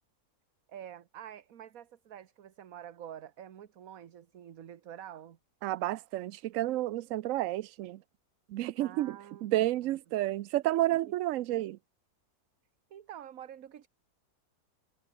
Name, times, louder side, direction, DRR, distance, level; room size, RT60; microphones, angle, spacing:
voice 1, 0.7-5.4 8.8-9.5 9.8-10.0 12.9-13.9, right 10 dB, 55° right, 1.4 m, -47 dB
voice 2, 5.6-8.0 8.5-11.8, right 15 dB, 85° right, 0.7 m, -31 dB
omnidirectional pair, 1.9 m